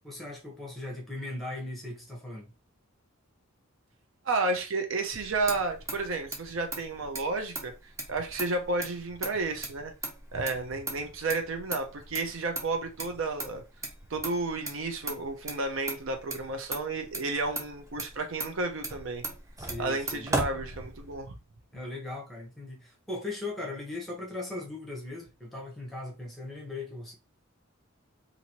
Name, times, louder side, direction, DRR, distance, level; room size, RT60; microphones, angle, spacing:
voice 1, 0.0-2.5 19.6-20.3 21.7-27.1, left 2 dB, ahead, 0.9 m, -38 dB
voice 2, 4.2-9.9 10.3-13.6 14.1-19.2 19.8-21.4, right 3 dB, 65° right, 0.5 m, -32 dB
Motor vehicle (road), 5.1-21.3, right 2 dB, 15° right, 0.5 m, -38 dB
2.9 x 2.6 x 2.9 m
head